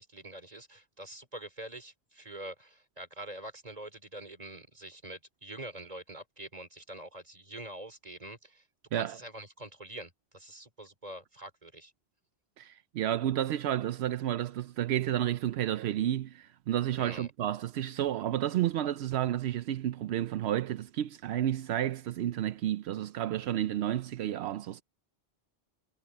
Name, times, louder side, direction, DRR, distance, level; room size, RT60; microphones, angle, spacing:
voice 1, 0.0-8.6 8.9-11.9 17.0-17.3, right 1 dB, 35° right, 3.2 m, -45 dB
voice 2, 12.6-24.8, right 11 dB, 80° right, 0.8 m, -31 dB
omnidirectional pair, 1.1 m